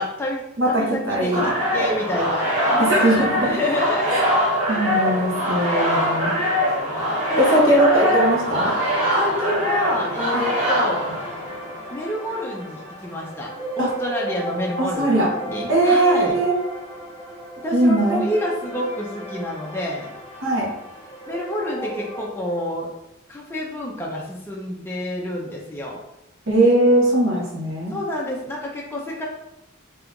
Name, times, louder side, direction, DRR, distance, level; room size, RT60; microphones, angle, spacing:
voice 1, 0.0-4.8 5.3-6.5 7.3-8.2 8.7-8.8 9.1-11.0 11.9-16.4 17.6-20.1 21.3-22.9 23.3-26.0 27.9-29.3, left 1 dB, 10° left, -3 dB, 0.4 m, -28 dB
voice 2, 0.6-1.5 2.8-3.5 4.1-4.2 4.7-6.3 7.4-8.7 10.3-10.4 13.8-13.9 14.8-15.3 15.7-16.5 17.7-18.2 20.4-20.7 26.5-27.9, right 1 dB, 70° right, -3 dB, 1.0 m, -19 dB
sound 1, 1.3-11.8, equal, 40° right, 1.2 m, -23 dB
sound 2, 8.9-22.3, right 1 dB, 10° right, 0.8 m, -35 dB
2.8 x 2.4 x 3.6 m, 0.87 s
head